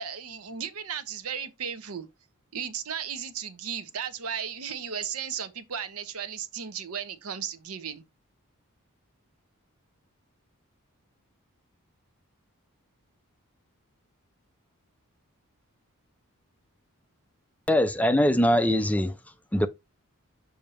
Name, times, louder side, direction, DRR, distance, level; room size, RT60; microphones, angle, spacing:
voice 1, 0.0-2.1 2.5-8.0, right 7 dB, 80° right, 0.9 m, -35 dB
voice 2, 17.7-19.1 19.5-19.7, left 1 dB, 5° left, 0.4 m, -22 dB
7.2 x 2.8 x 4.9 m
head